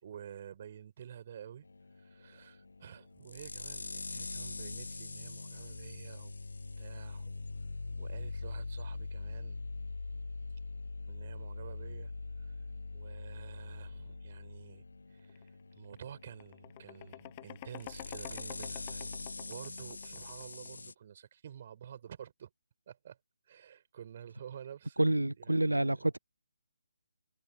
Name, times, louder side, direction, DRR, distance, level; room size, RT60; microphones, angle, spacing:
voice 1, 0.0-1.7 2.0-6.3 6.8-7.3 8.0-9.7 11.1-12.1 12.4-12.5 12.9-14.8 15.1-22.5 22.9-23.2 23.5-26.1, right 9 dB, 35° right, 5.4 m, -50 dB
sound 1, 1.6-20.9, left 3 dB, 70° left, 1.5 m, -43 dB
sound 2, 15.3-15.5 15.8-20.8, left 18 dB, 25° left, 6.6 m, -49 dB
voice 2, 25.0-26.2, right 1 dB, 85° right, 0.4 m, -28 dB
figure-of-eight pair, 150°, 0 cm